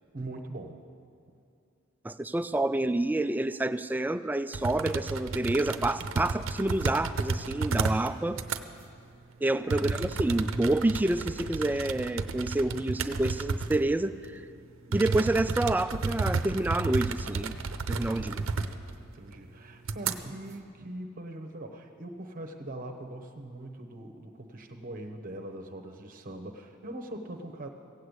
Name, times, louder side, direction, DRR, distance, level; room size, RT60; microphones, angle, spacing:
voice 1, 0.1-0.8 9.7-10.1 18.1-18.8 19.1-27.7, right 1 dB, 45° right, 3 dB, 0.9 m, -42 dB
voice 2, 2.0-8.4 9.4-14.4 14.9-17.5 17.9-18.4, right 2 dB, 10° right, 12 dB, 0.3 m, -28 dB
sound 1, 4.5-8.1 8.3-8.6 9.7-13.9 14.2-14.3 14.9-19.0 19.3-19.4 19.8-20.1, right 4 dB, 75° right, 0.6 m, -32 dB
16.0 x 8.5 x 8.0 m, 2.4 s
head